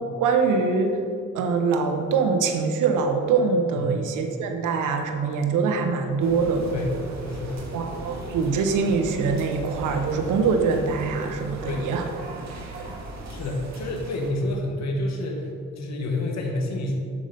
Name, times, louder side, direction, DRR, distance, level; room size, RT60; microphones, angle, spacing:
voice 1, 0.2-1.0 1.3-6.7 7.7-12.1 12.8-12.9, right 5 dB, 85° right, 5 dB, 0.9 m, -23 dB
sound 1, 6.2-14.3, right 2 dB, 60° right, 1.9 m, -37 dB
voice 2, 7.3-7.6 11.6-11.9 13.3-15.5 15.8-16.9, left 2 dB, 60° left, 0 dB, 1.7 m, -28 dB
8.6 x 6.5 x 5.3 m, 2.3 s
cardioid pair, 90°, 30 cm